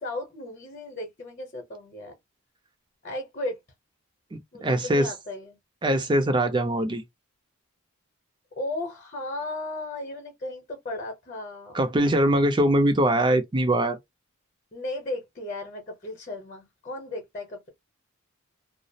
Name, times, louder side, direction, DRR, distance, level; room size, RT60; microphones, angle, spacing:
voice 1, 0.0-2.1 3.0-3.6 4.5-5.6 8.6-11.8 14.7-17.7, left 2 dB, 35° left, 0.8 m, -35 dB
voice 2, 4.3-5.1 5.8-7.0 11.7-14.0, right 1 dB, 20° right, 0.5 m, -22 dB
2.3 x 2.0 x 2.7 m
head